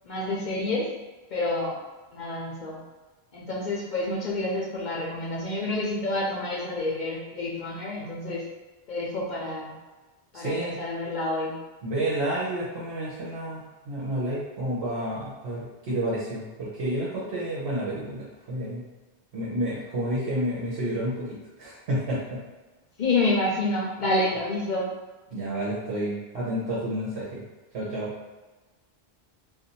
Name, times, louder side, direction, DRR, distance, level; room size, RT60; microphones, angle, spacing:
voice 1, 0.0-0.9 1.3-1.8 2.1-2.8 3.3-8.4 8.9-9.7 10.3-11.5 23.0-24.9, left 2 dB, 55° left, -4 dB, 0.6 m, -28 dB
voice 2, 10.3-10.7 11.8-18.8 19.3-22.4 25.3-27.4 27.7-28.1, right 1 dB, 75° right, -9 dB, 1.1 m, -30 dB
2.6 x 2.3 x 4.0 m, 1.2 s
omnidirectional pair, 1.1 m